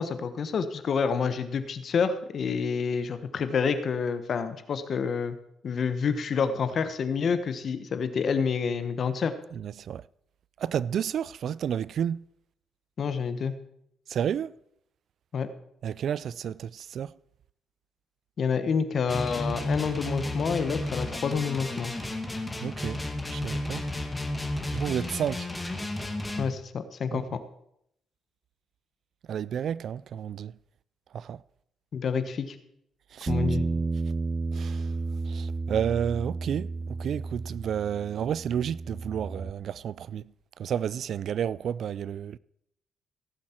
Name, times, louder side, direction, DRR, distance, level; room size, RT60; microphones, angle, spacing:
voice 1, 0.0-5.4 5.6-9.3 13.0-13.5 15.3-15.5 18.4-21.9 26.4-27.3 31.9-32.6 33.3-33.6, left 6 dB, 55° left, 1.1 m, -28 dB
voice 2, 9.5-10.0 10.6-12.2 14.1-14.5 15.8-17.1 22.6-23.0 23.3-23.9 24.7-25.5 27.1-27.2 29.3-30.5 31.1-31.4 33.1-33.3 34.5-34.9 35.3-36.7 37.0-40.2 40.6-42.4, right 9 dB, 65° right, 0.3 m, -31 dB
sound 1, 19.1-26.5, left 1 dB, 10° left, 1.9 m, -33 dB
Bass guitar, 33.3-39.5, right 3 dB, 25° right, 0.6 m, -32 dB
17.0 x 7.4 x 4.4 m
cardioid pair, 90°, 0 cm